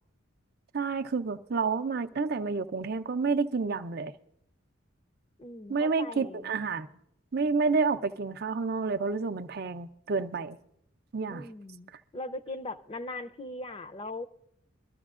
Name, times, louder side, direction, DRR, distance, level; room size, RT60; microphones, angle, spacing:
voice 1, 0.7-4.1 5.7-6.9 7.3-10.6 11.1-11.5, right 4 dB, 50° right, 0.5 m, -29 dB
voice 2, 5.4-6.5 11.3-14.3, left 2 dB, 25° left, 0.5 m, -40 dB
23.0 x 13.5 x 2.4 m
head